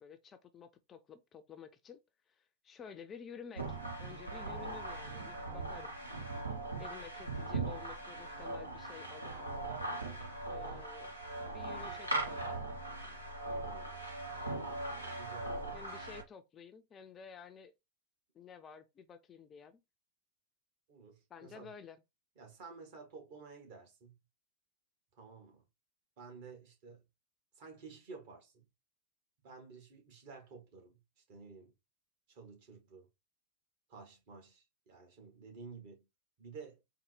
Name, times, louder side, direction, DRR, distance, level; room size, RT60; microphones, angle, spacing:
voice 1, 0.0-2.0 2.3-5.9 6.8-9.3 10.5-11.1 11.5-12.5 15.7-17.7 18.3-19.8 21.3-22.0, left 7 dB, 25° left, 0.4 m, -52 dB
sound 1, 3.6-16.2, right 2 dB, 80° right, 0.9 m, -40 dB
voice 2, 13.6-14.0 14.6-14.9 15.2-16.0 20.9-21.7 22.4-24.2 25.2-25.6 26.2-27.0 27.5-28.6 29.4-31.0 31.3-31.7 32.3-33.1 33.9-36.1 36.4-36.8, right 4 dB, 50° right, 1.5 m, -52 dB
4.0 x 2.1 x 3.1 m
figure-of-eight pair, 90°, 0 cm